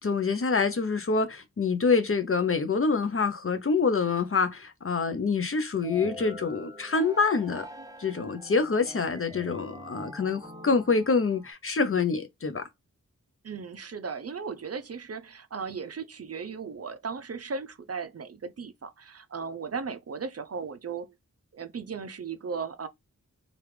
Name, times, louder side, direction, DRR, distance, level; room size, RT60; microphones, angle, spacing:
voice 1, 0.0-7.7 8.0-12.7, left 4 dB, 40° left, 0.6 m, -26 dB
sound 1, 5.8-11.5, left 1 dB, 10° right, 0.7 m, -45 dB
voice 2, 13.4-21.2 21.5-22.9, right 5 dB, 50° right, 0.5 m, -36 dB
3.4 x 2.4 x 3.1 m
wide cardioid pair, 85°, 33 cm